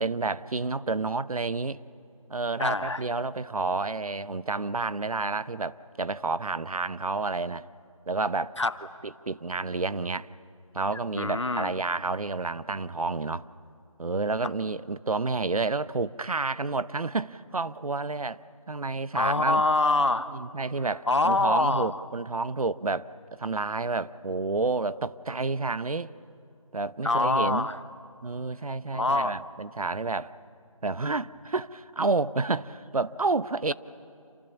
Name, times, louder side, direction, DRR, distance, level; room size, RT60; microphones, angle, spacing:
voice 1, 0.0-1.8 2.3-7.7 8.1-8.5 9.0-10.3 10.7-13.5 14.0-18.4 18.7-19.6 20.3-23.1 23.4-26.1 26.7-27.7 28.2-30.3 30.8-33.7, right 3 dB, 75° right, 16 dB, 0.8 m, -30 dB
voice 2, 2.6-3.0 8.6-8.7 11.2-11.7 19.1-20.3 21.1-22.0 27.0-27.8 28.9-29.3, left 2 dB, 50° left, 13 dB, 1.0 m, -24 dB
28.0 x 27.5 x 7.1 m, 2.6 s
figure-of-eight pair, 180°, 18 cm